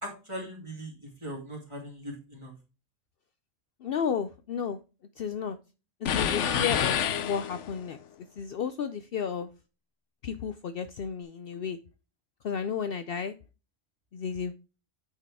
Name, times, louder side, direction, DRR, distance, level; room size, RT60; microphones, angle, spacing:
voice 1, 0.0-2.5, equal, 25° right, -2 dB, 2.7 m, -40 dB
voice 2, 3.8-4.8 5.2-5.6 6.1-8.0 8.4-9.5 10.2-11.8 12.4-13.3 14.1-14.5, left 7 dB, 65° left, 10 dB, 0.7 m, -32 dB
sound 1, 6.1-7.9, left 8 dB, 80° left, 1.0 m, -28 dB
8.6 x 4.6 x 3.5 m, 0.31 s
omnidirectional pair, 1.2 m